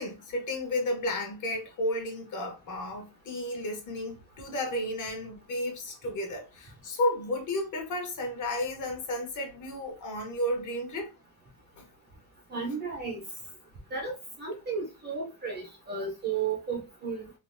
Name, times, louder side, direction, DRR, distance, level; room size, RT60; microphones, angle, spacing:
voice 1, 0.0-11.1 11.8-11.9, left 1 dB, 40° left, 1.0 m, -32 dB
voice 2, 12.5-13.2 13.9-17.3, right 5 dB, 20° right, 0.6 m, -34 dB
3.5 x 2.5 x 2.5 m
cardioid pair, 150°, 48 cm